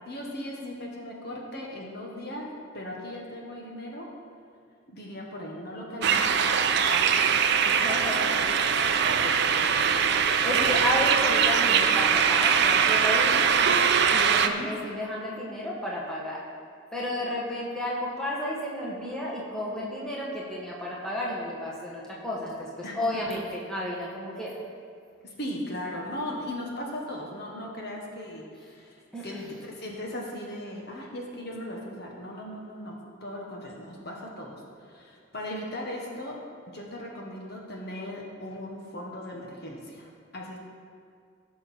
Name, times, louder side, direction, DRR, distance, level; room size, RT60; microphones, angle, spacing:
voice 1, 0.1-2.5 2.7-4.1 4.9-6.3 6.9-7.3 14.5-14.7 22.8-23.0 25.2-29.4 29.6-36.4 36.7-40.6, left 1 dB, 50° left, -1 dB, 1.4 m, -38 dB
sound 1, 6.0-14.5, right 7 dB, 50° right, 0.5 m, -22 dB
voice 2, 7.7-8.6 8.8-10.0 10.2-13.5 14.1-16.4 16.9-24.5 29.1-29.4, left 1 dB, 5° left, -6 dB, 1.6 m, -32 dB
16.5 x 6.4 x 4.4 m, 2.2 s
head